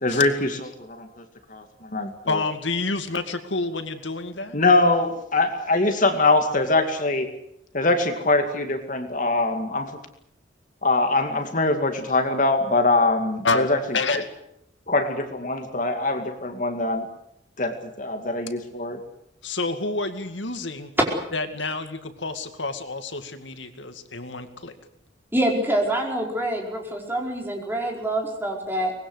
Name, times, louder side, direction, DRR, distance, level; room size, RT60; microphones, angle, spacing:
voice 1, 0.0-0.5 0.8-1.2 1.5-2.1 4.5-7.4 7.7-10.0 10.8-13.8 14.9-17.1 17.6-19.0, left 2 dB, 45° left, 6 dB, 2.4 m, -23 dB
voice 2, 2.3-4.6 13.4-13.7 13.9-14.2 19.4-20.9 21.3-24.7, left 3 dB, 90° left, 8 dB, 2.3 m, -28 dB
voice 3, 25.3-28.9, right 1 dB, 10° right, 0 dB, 4.9 m, -26 dB
24.5 x 20.0 x 8.1 m, 0.76 s
head